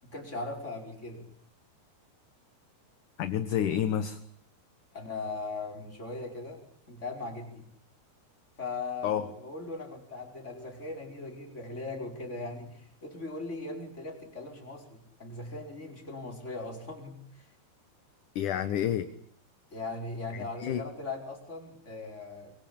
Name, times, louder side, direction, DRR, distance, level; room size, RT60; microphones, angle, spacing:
voice 1, 0.0-1.3 4.9-7.7 8.6-17.5 19.7-22.5, left 3 dB, 15° left, 2 dB, 5.2 m, -39 dB
voice 2, 3.2-4.2 9.0-9.2 18.4-19.1 20.3-20.8, left 10 dB, 65° left, 10 dB, 2.3 m, -29 dB
24.5 x 24.0 x 8.7 m, 0.67 s
omnidirectional pair, 4.8 m